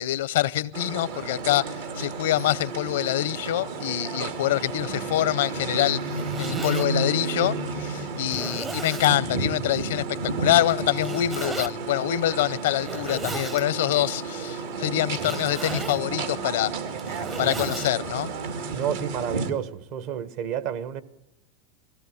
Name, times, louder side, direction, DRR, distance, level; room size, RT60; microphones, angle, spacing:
voice 1, 0.0-6.0 6.4-10.0 10.4-16.7 17.4-18.3, left 14 dB, 80° left, 0.6 m, -25 dB
sound 1, 0.7-19.5, right 3 dB, 80° right, 2.1 m, -32 dB
Zipper (clothing), 5.9-6.9 7.6-7.7 8.3-9.1 11.0-11.7 12.7-13.6 15.1-16.0 16.8-17.9, right 4 dB, 20° right, 0.6 m, -35 dB
voice 2, 18.7-21.0, right 9 dB, 60° right, 1.1 m, -30 dB
21.0 x 16.5 x 8.4 m
hypercardioid pair, 115°, 0 cm